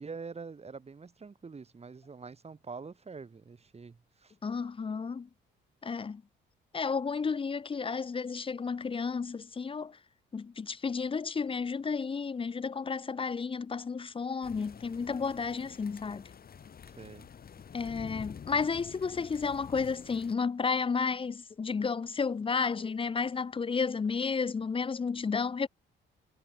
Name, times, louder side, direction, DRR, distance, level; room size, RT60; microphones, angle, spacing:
voice 1, 0.0-4.3 17.0-17.3, right 4 dB, 30° right, 4.2 m, -45 dB
voice 2, 4.4-5.3 5.8-6.2 6.7-10.0 10.3-16.2 17.7-25.7, left 5 dB, 25° left, 0.7 m, -32 dB
sound 1, 14.4-20.3, left 7 dB, 50° left, 4.2 m, -48 dB
cardioid pair, 90°, 20 cm